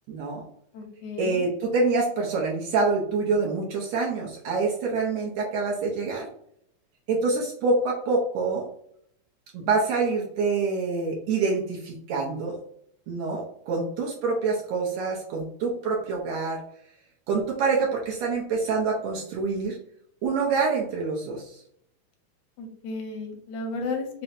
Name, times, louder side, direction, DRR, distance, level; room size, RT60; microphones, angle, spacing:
voice 1, 0.1-0.4 1.2-6.3 7.1-8.6 9.5-12.6 13.1-16.6 17.3-19.8 20.2-21.6, right 4 dB, 75° right, -1 dB, 1.7 m, -26 dB
voice 2, 0.7-1.4 22.6-24.2, left 3 dB, 80° left, 3 dB, 2.0 m, -33 dB
5.6 x 2.1 x 2.6 m, 0.67 s
omnidirectional pair, 3.5 m